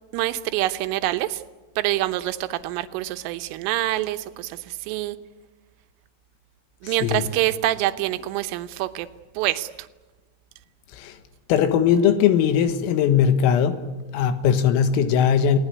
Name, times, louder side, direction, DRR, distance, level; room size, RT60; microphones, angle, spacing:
voice 1, 0.1-1.4 1.8-5.2 6.8-9.1 9.3-9.9, right 15 dB, 80° right, 3.4 m, -26 dB
voice 2, 6.8-7.3 10.9-11.2 11.5-13.9 14.1-15.6, left 8 dB, 80° left, 4.1 m, -20 dB
29.0 x 19.0 x 9.7 m
omnidirectional pair, 6.0 m